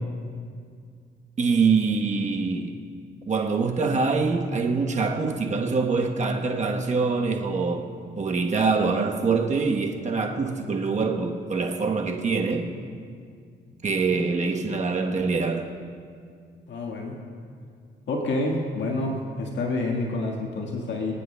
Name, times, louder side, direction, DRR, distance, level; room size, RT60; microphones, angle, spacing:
voice 1, 1.4-2.8 3.3-7.9 8.2-12.7 13.8-15.7, right 4 dB, 35° right, 1.1 m, -24 dB
voice 2, 16.7-17.2 18.1-21.1, left 2 dB, 65° left, 1.6 m, -28 dB
25.5 x 9.2 x 2.3 m
cardioid pair, 90°, 20 cm